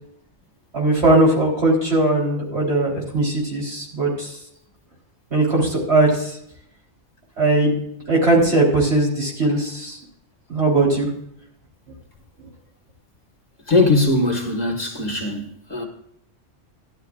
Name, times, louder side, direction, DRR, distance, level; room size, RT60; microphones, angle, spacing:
voice 1, 0.7-4.3 5.3-6.4 7.4-7.8 8.1-10.0 10.5-11.1, right 2 dB, 70° right, 4.1 m, -19 dB
voice 2, 13.7-15.4 15.7-15.9, left 2 dB, 35° left, 1.9 m, -20 dB
14.5 x 11.5 x 2.5 m
omnidirectional pair, 1.2 m